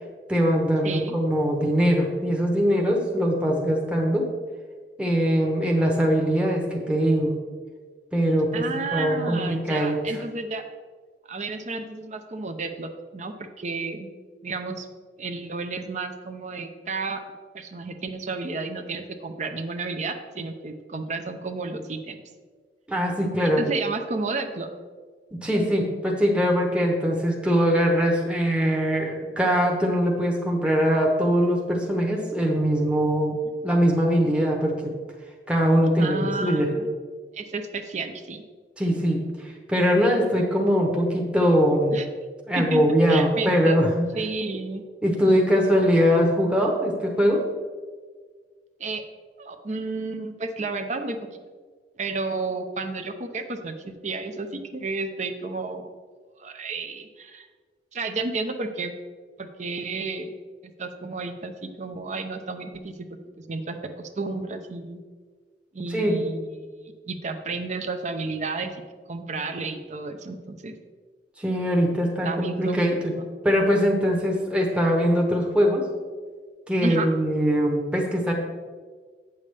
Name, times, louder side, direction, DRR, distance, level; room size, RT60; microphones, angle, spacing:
voice 1, 0.3-4.3 5.0-7.3 8.1-8.6 8.9-10.2 22.9-23.6 25.3-33.4 33.6-34.9 35.5-36.7 38.8-42.0 42.5-44.0 45.0-47.4 65.9-66.2 71.4-73.1 73.4-75.9 76.7-78.3, equal, 5° right, 0 dB, 0.9 m, -22 dB
voice 2, 0.8-1.2 8.5-10.6 11.3-14.1 14.4-14.9 15.2-17.2 17.5-22.1 23.4-24.7 33.4-33.5 35.9-36.9 37.3-38.4 41.9-42.1 42.6-42.8 43.1-43.8 44.1-44.8 48.8-49.0 49.4-51.2 52.0-55.9 56.4-57.5 57.9-58.9 59.4-62.9 63.5-65.0 65.7-68.8 69.1-70.7 72.2-72.8 73.2-73.3 76.8-77.1, right 3 dB, 40° right, 7 dB, 0.6 m, -32 dB
8.5 x 6.9 x 3.3 m, 1.5 s
head